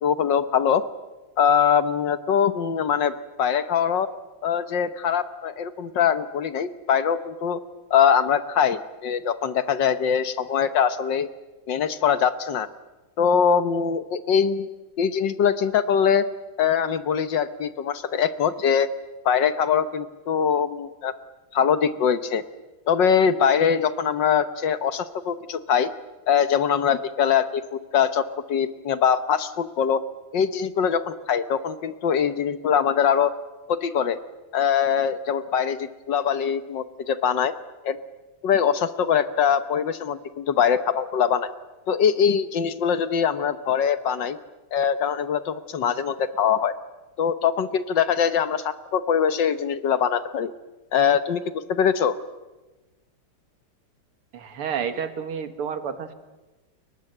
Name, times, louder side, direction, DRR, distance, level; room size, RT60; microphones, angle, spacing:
voice 1, 0.0-0.8 1.4-4.1 4.4-7.6 7.9-11.3 11.7-12.7 13.2-16.2 16.6-18.9 19.2-21.1 21.5-22.4 22.9-25.9 26.3-30.0 30.3-33.3 33.7-34.2 34.5-37.5 37.8-38.0 38.4-41.5 41.9-44.4 44.7-46.7 47.2-50.5 50.9-52.1, left 7 dB, 60° left, 12 dB, 1.6 m, -22 dB
voice 2, 54.3-56.1, right 7 dB, 80° right, 10 dB, 2.6 m, -30 dB
29.5 x 22.5 x 7.9 m, 1.1 s
omnidirectional pair, 2.4 m